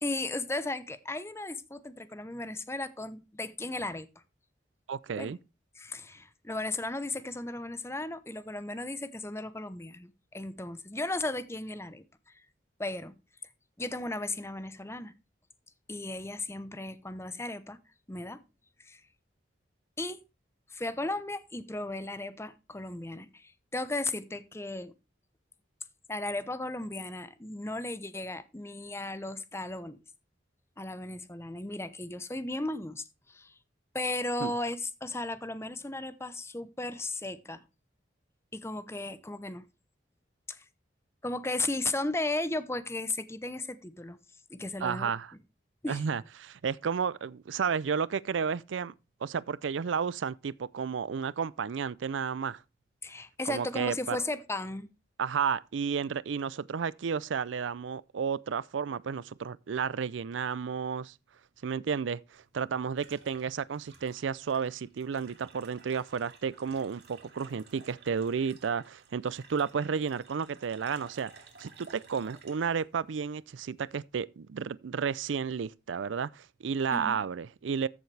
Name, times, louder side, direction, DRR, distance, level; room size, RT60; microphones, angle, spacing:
voice 1, 0.0-4.1 5.2-5.4 5.8-12.0 12.8-13.1 13.8-15.1 15.9-17.8 18.1-18.4 18.8-19.0 20.0-20.2 20.7-24.9 26.1-30.0 30.8-33.5 33.9-37.6 38.5-39.7 40.5-40.6 41.2-44.2 44.5-45.1 45.8-46.0 53.0-54.9 76.9-77.2, left 2 dB, 15° left, 0.8 m, -35 dB
voice 2, 4.9-5.4 34.4-34.5 44.8-45.3 45.9-48.9 49.2-52.6 53.5-54.2 55.2-61.1 61.6-71.3 71.6-77.9, right 6 dB, 85° right, 0.4 m, -32 dB
sound 1, 62.3-74.1, right 5 dB, 60° right, 2.3 m, -55 dB
14.0 x 7.1 x 3.3 m
head